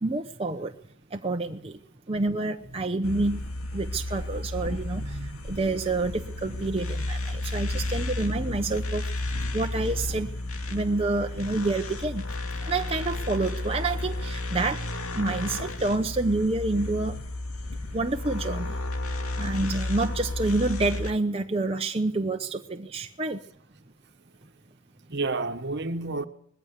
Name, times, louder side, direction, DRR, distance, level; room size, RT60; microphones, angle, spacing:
voice 1, 0.0-0.7 1.1-1.8 2.1-3.4 3.7-9.1 9.5-10.4 10.7-12.2 12.6-14.8 15.1-17.2 17.9-18.8 19.4-23.4, right 2 dB, 25° right, 0.9 m, -28 dB
sound 1, 3.0-21.1, left 2 dB, 90° left, 2.5 m, -32 dB
voice 2, 4.6-5.6 8.4-8.6 25.1-26.3, right 3 dB, 50° right, 1.3 m, -32 dB
20.5 x 15.5 x 8.2 m
head